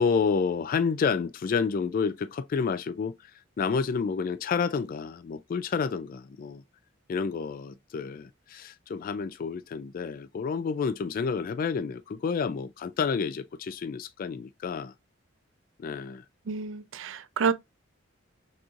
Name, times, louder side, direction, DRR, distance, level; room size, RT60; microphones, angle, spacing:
voice 1, 0.0-6.6 7.1-14.9 15.8-16.2, left 5 dB, 45° left, 0.3 m, -29 dB
voice 2, 16.5-17.5, right 6 dB, 70° right, 0.5 m, -28 dB
6.1 x 3.0 x 2.4 m
head